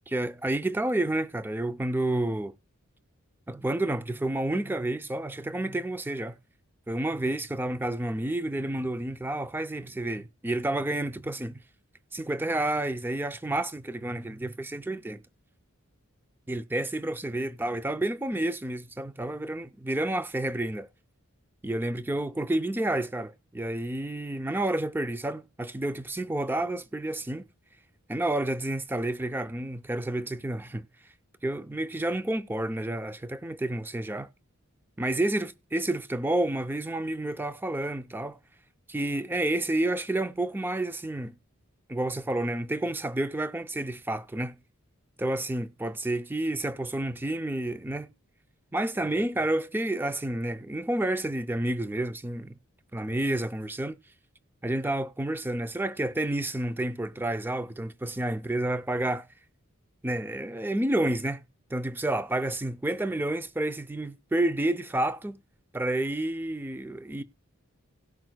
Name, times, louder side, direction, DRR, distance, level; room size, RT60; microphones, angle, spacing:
voice 1, 0.1-2.5 3.5-6.4 6.9-11.6 12.1-15.2 16.5-20.9 21.6-27.4 28.1-30.9 31.4-34.3 35.0-38.4 38.9-41.3 41.9-44.6 45.2-48.1 48.7-52.6 52.9-54.0 54.6-59.3 60.0-61.4 61.7-65.4 65.7-67.2, right 1 dB, 10° right, 0.4 m, -30 dB
17.5 x 6.0 x 2.2 m
head